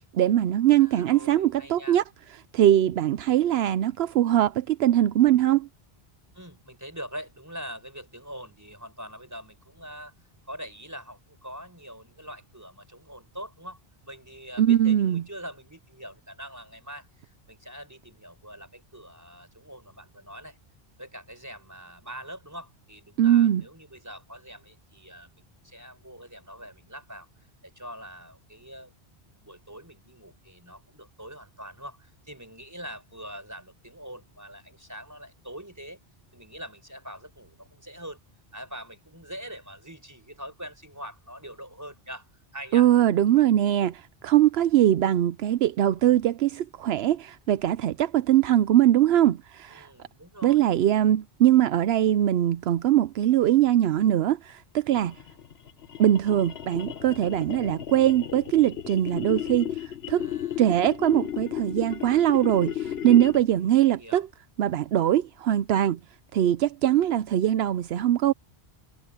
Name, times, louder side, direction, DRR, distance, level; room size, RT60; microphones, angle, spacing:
voice 1, 0.1-2.0 2.5-5.7 14.6-15.2 23.2-23.6 42.7-49.9 50.4-55.2 56.0-59.8 60.1-60.3 60.6-64.3 64.6-66.0 66.3-68.3, right 12 dB, 80° right, 0.8 m, -22 dB
voice 2, 0.8-2.0 6.3-10.1 10.5-20.6 21.0-27.3 27.6-28.9 29.3-36.0 36.3-38.2 38.5-42.9 49.7-50.8 60.1-60.6 63.9-64.3, equal, 15° right, 5.5 m, -43 dB
sound 1, 54.9-63.6, left 10 dB, 75° left, 1.2 m, -35 dB
omnidirectional pair, 1.0 m